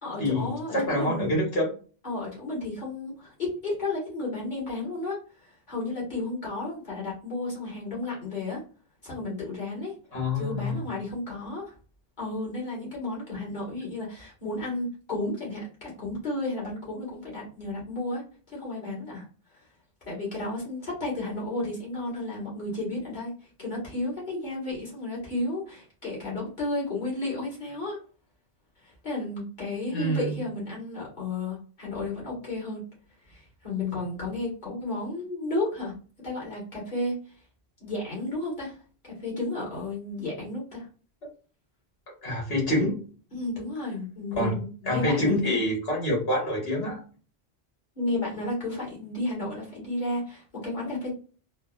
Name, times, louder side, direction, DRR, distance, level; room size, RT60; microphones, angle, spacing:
voice 1, 0.0-1.4 2.0-8.6 9.0-9.9 10.3-11.7 12.2-19.3 19.5-19.6 20.1-28.0 28.8-32.8 33.2-35.9 36.2-37.2 37.8-38.8 39.0-40.9 43.3-45.6 48.0-51.1, left 2 dB, 45° left, -6 dB, 1.8 m, -33 dB
voice 2, 0.7-1.7 10.1-10.8 29.9-30.4 42.2-43.0 44.4-44.5 44.9-47.0, left 1 dB, 65° left, -2 dB, 1.7 m, -26 dB
3.9 x 2.0 x 2.4 m, 0.38 s
omnidirectional pair, 1.1 m